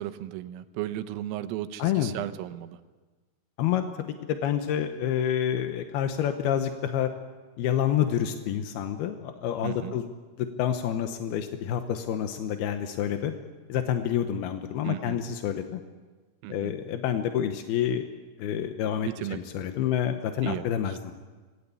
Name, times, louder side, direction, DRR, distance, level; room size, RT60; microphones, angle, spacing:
voice 1, 0.0-2.8 9.6-10.0 14.8-15.2 16.4-16.7 19.0-19.4 20.4-21.0, right 13 dB, 90° right, 10 dB, 3.6 m, -35 dB
voice 2, 1.8-2.1 3.6-7.1 7.6-10.1 10.4-13.3 13.7-15.8 16.5-18.1 18.4-21.1, left 10 dB, 75° left, 7 dB, 2.3 m, -28 dB
26.0 x 19.5 x 8.4 m, 1.3 s
omnidirectional pair, 5.8 m